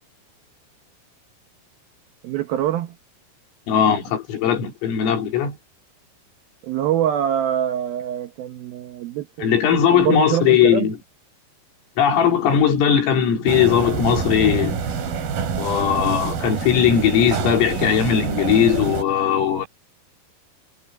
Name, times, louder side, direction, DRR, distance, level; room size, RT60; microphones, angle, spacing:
voice 1, 2.2-3.0 6.6-9.6 9.9-10.9, right 11 dB, 80° right, 2.1 m, -24 dB
voice 2, 3.7-5.6 9.4-11.0 12.0-14.8 15.6-19.7, left 8 dB, 80° left, 6.3 m, -19 dB
sound 1, 13.5-19.0, right 6 dB, 50° right, 4.4 m, -26 dB
omnidirectional pair, 5.9 m